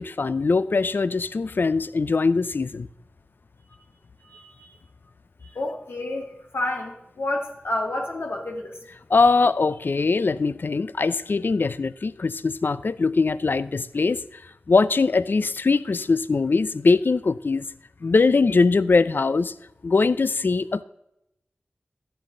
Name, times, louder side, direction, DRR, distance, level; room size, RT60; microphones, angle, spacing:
voice 1, 0.0-2.9 9.1-14.4 14.7-17.6 18.0-19.5 19.8-20.8, left 4 dB, 60° left, 16 dB, 0.5 m, -21 dB
voice 2, 4.3-4.8 5.5-6.3 6.5-8.8, left 1 dB, 85° left, 1 dB, 1.7 m, -29 dB
12.5 x 10.0 x 3.8 m, 0.83 s
wide cardioid pair, 55°, 4 cm